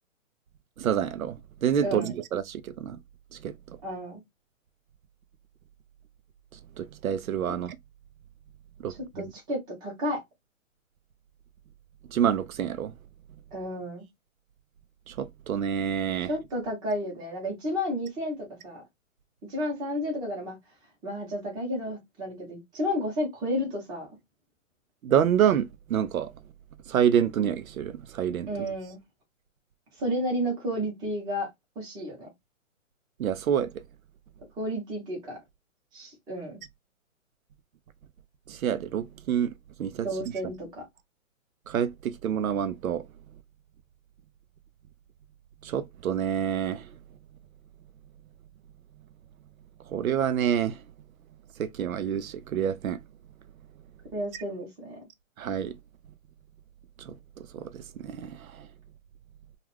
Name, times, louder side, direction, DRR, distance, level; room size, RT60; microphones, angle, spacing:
voice 1, 0.8-3.0 3.3-3.8 6.8-7.8 8.8-9.2 12.1-12.9 15.1-16.3 25.0-26.3 26.9-28.5 33.2-33.8 38.5-39.5 39.8-40.3 41.7-43.1 45.6-46.9 49.9-50.8 51.6-53.0 55.4-55.8 57.0-58.7, right 9 dB, 85° right, 0.6 m, -28 dB
voice 2, 1.8-2.1 3.8-4.2 7.5-7.6 9.1-10.2 13.5-14.0 16.3-18.8 19.5-20.6 21.0-24.1 28.5-29.0 30.0-31.5 31.8-32.3 34.6-35.4 35.9-36.6 40.0-40.8 54.1-55.0, equal, 10° right, 0.8 m, -32 dB
2.4 x 2.4 x 3.2 m
hypercardioid pair, 150°, 41 cm